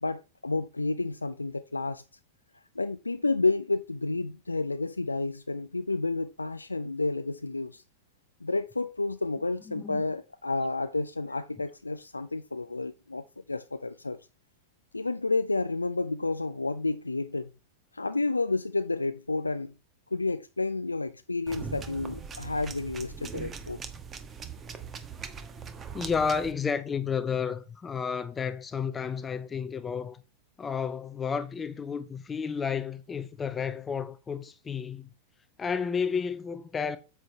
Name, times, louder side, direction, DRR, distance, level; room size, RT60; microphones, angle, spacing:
voice 1, 0.0-2.0 2.8-7.8 8.4-14.2 14.9-17.5 17.9-19.7 20.1-23.8, left 3 dB, 80° left, 0.4 m, -30 dB
sound 1, 21.5-26.5, right 6 dB, 25° right, 1.2 m, -41 dB
voice 2, 25.9-30.2 30.6-35.1 35.6-37.0, left 6 dB, 20° left, 0.6 m, -31 dB
9.0 x 7.5 x 3.2 m
figure-of-eight pair, 90°, 0 cm